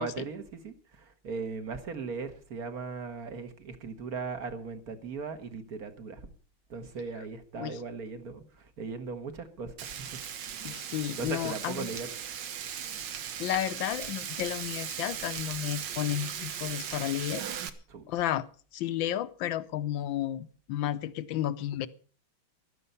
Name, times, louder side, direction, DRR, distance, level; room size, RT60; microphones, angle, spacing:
voice 1, 0.0-6.3 6.7-10.2 10.7-12.1 17.9-18.1, right 5 dB, 45° right, 9 dB, 1.9 m, -38 dB
Frying (food), 9.8-17.7, right 9 dB, 65° right, 1.7 m, -38 dB
voice 2, 10.6-11.9 13.4-17.4 18.1-18.4 18.7-21.9, left 12 dB, 70° left, 15 dB, 1.5 m, -32 dB
15.0 x 12.0 x 5.5 m, 0.41 s
omnidirectional pair, 2.3 m